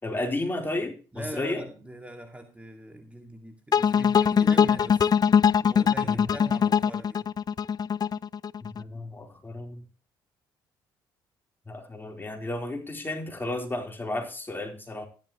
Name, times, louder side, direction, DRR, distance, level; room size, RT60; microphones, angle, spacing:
voice 1, 0.0-1.6 6.1-6.3 8.6-9.8 11.7-15.1, left 2 dB, 20° left, 3 dB, 3.9 m, -33 dB
voice 2, 1.1-5.1 5.6-7.3, right 1 dB, 10° right, 4 dB, 2.2 m, -42 dB
sound 1, 3.7-8.8, left 7 dB, 40° left, 0.5 m, -22 dB
13.5 x 12.0 x 3.1 m, 0.35 s
supercardioid pair, 65°, 10 cm